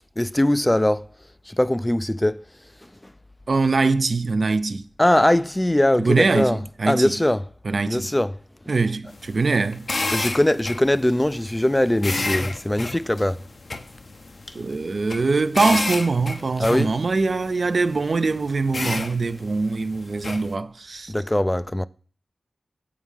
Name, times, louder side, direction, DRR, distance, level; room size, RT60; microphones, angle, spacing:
voice 1, 0.2-1.1 1.5-2.4 3.0-3.1 5.0-6.6 6.9-7.4 7.9-8.3 10.1-13.4 16.6-16.9 21.1-21.9, left 1 dB, 15° left, 0.3 m, -21 dB
voice 2, 3.5-4.9 6.0-7.1 7.6-8.1 8.7-9.9 14.5-21.1, right 3 dB, 65° right, 0.4 m, -23 dB
sound 1, 9.1-20.5, left 2 dB, 65° left, 0.7 m, -32 dB
7.2 x 4.8 x 5.4 m
cardioid pair, 50°, 0 cm